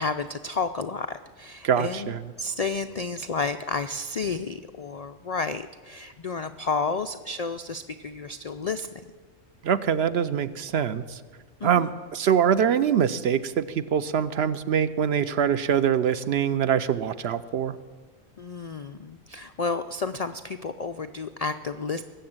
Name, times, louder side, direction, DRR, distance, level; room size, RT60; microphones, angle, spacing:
voice 1, 0.0-8.9 11.6-11.9 18.4-22.0, left 4 dB, 85° left, 9 dB, 0.3 m, -31 dB
voice 2, 1.6-2.2 9.6-11.2 11.6-17.8, right 8 dB, 60° right, 13 dB, 0.7 m, -24 dB
20.0 x 7.7 x 8.8 m, 1.5 s
omnidirectional pair, 1.4 m